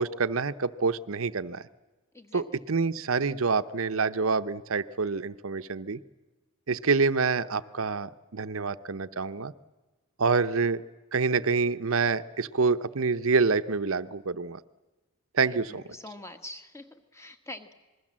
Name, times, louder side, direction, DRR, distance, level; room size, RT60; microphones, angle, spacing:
voice 1, 0.0-1.6 2.3-6.0 6.7-9.5 10.2-10.8 11.1-14.6 15.3-15.8, right 4 dB, 70° right, 13 dB, 0.8 m, -27 dB
voice 2, 2.1-2.7 15.4-17.7, left 2 dB, 15° left, 9 dB, 1.4 m, -45 dB
27.0 x 21.0 x 7.5 m, 1.2 s
head